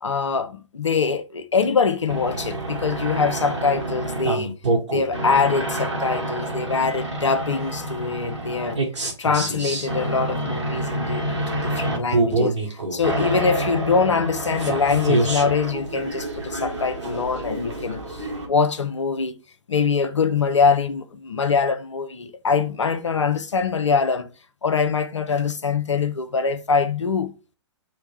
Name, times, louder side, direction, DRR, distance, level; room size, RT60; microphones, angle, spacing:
voice 1, 0.0-4.5 4.9-8.8 9.2-19.4 19.7-24.3 24.6-27.3, left 5 dB, 75° left, 0.7 m, -23 dB
sound 1, 2.1-18.5, right 2 dB, 75° right, 1.6 m, -27 dB
4.4 x 2.2 x 4.7 m
figure-of-eight pair, 110°, 15 cm